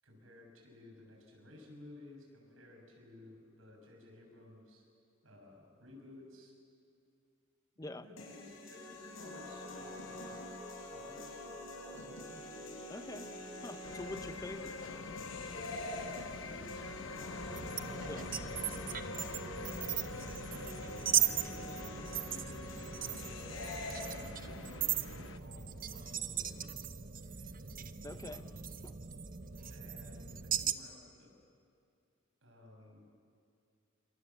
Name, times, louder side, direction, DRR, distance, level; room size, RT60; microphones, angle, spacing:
voice 1, 0.0-4.9 5.2-6.6 7.8-10.5 10.9-11.3 11.9-12.5 16.1-18.4 20.2-22.8 23.2-26.8 28.1-28.6 29.7-31.4 32.4-33.1, left 2 dB, 80° right, 1 dB, 7.3 m, -56 dB
sound 1, 8.2-24.2, left 1 dB, 90° left, 6.0 m, -46 dB
voice 2, 12.9-13.3 13.6-14.8 18.1-18.3 28.0-28.5 28.8-28.9, left 1 dB, 15° left, 10 dB, 0.7 m, -45 dB
sound 2, 13.8-25.4, left 3 dB, 75° left, 1.0 m, -46 dB
sound 3, 17.4-30.7, right 9 dB, 40° right, 0.9 m, -38 dB
28.5 x 26.5 x 7.4 m, 2.5 s
head